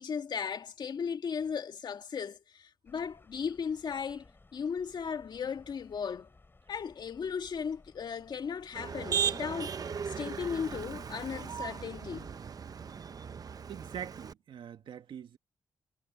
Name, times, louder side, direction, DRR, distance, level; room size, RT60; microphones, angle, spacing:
voice 1, 0.0-4.3 4.5-6.3 6.7-9.8 10.1-12.4, left 6 dB, 60° left, 1.9 m, -36 dB
sound 1, 2.9-12.3, left 3 dB, 25° left, 5.7 m, -60 dB
Motor vehicle (road), 8.8-14.3, right 7 dB, 45° right, 0.8 m, -37 dB
voice 2, 13.7-15.4, right 9 dB, 75° right, 2.1 m, -43 dB
cardioid pair, 80°, 8 cm